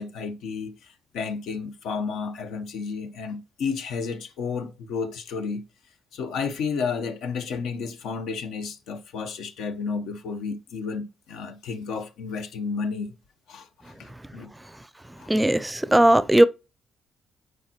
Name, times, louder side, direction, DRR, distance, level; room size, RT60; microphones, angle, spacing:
voice 1, 0.0-5.7 6.1-13.2 13.5-14.5 15.2-15.3, left 5 dB, 85° left, 0.9 m, -32 dB
voice 2, 15.3-16.4, right 1 dB, 10° right, 0.5 m, -18 dB
8.6 x 4.5 x 2.9 m
cardioid pair, 90°, 0 cm